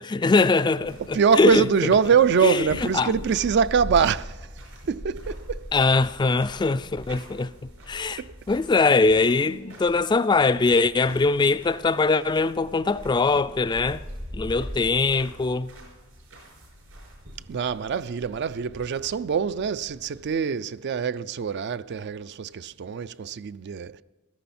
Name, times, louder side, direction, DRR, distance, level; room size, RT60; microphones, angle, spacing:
voice 1, 0.0-1.7 2.4-3.1 5.7-14.0 14.3-15.7, left 3 dB, 20° left, 0.3 m, -22 dB
sound 1, 0.7-20.3, equal, 75° right, 5.6 m, -42 dB
voice 2, 1.1-4.5 4.9-5.7 8.2-8.3 17.5-24.0, right 6 dB, 55° right, 0.4 m, -24 dB
sound 2, 9.1-10.3 11.2-12.3, left 1 dB, 90° left, 1.7 m, -50 dB
16.0 x 13.0 x 4.3 m
head